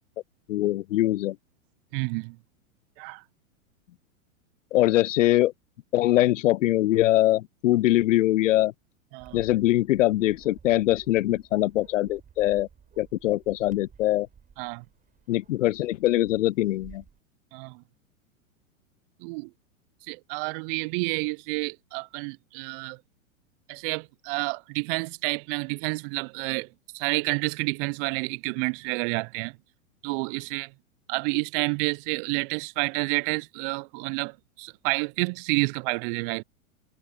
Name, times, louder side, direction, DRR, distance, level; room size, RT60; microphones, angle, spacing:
voice 1, 0.5-1.4 4.7-5.5 5.9-8.7 9.3-12.7 13.0-14.3 15.3-17.0, left 15 dB, 65° left, 0.6 m, -22 dB
voice 2, 1.9-2.4 3.0-3.2 9.1-9.4 14.6-14.8 17.5-17.8 19.2-19.5 20.1-23.0 23.7-26.7 26.9-29.6 30.0-30.7 31.1-36.4, right 32 dB, 40° right, 0.7 m, -29 dB
Bark, 9.2-17.2, right 7 dB, 20° right, 5.2 m, -54 dB
hypercardioid pair, 105°, 41 cm